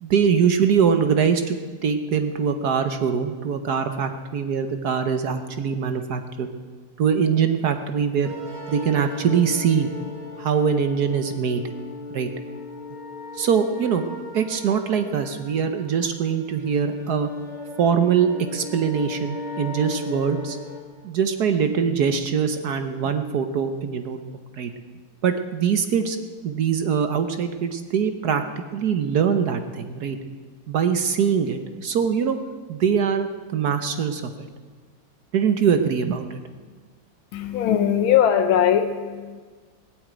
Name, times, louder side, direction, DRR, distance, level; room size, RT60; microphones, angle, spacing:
voice 1, 0.0-1.6 1.8-6.5 7.0-8.3 8.7-9.9 10.4-11.6 12.1-12.3 13.3-14.0 14.3-17.3 17.8-20.6 21.0-24.2 24.5-24.7 25.2-26.2 26.4-28.4 28.7-30.2 30.7-32.4 32.7-34.3 35.3-36.4, right 7 dB, 60° right, 8 dB, 1.3 m, -22 dB
sound 1, 8.2-20.8, left 2 dB, 20° right, 2.8 m, -37 dB
voice 2, 37.3-39.4, left 9 dB, 80° left, 7 dB, 1.6 m, -20 dB
18.0 x 8.2 x 9.1 m, 1.4 s
omnidirectional pair, 2.2 m